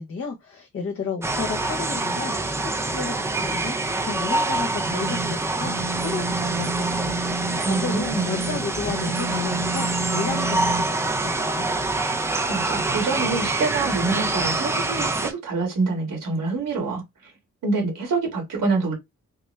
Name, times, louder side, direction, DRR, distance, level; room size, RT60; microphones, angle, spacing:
voice 1, 0.0-11.7, left 5 dB, 45° left, 0.6 m, -33 dB
sound 1, 1.2-15.3, right 2 dB, 10° right, 0.4 m, -26 dB
sound 2, 4.8-7.6 8.1-10.9, right 3 dB, 30° right, 0.7 m, -30 dB
voice 2, 7.5-8.3 12.1-17.3 17.6-18.9, right 3 dB, 75° right, 2.0 m, -26 dB
3.5 x 2.2 x 3.2 m
wide cardioid pair, 170°, 32 cm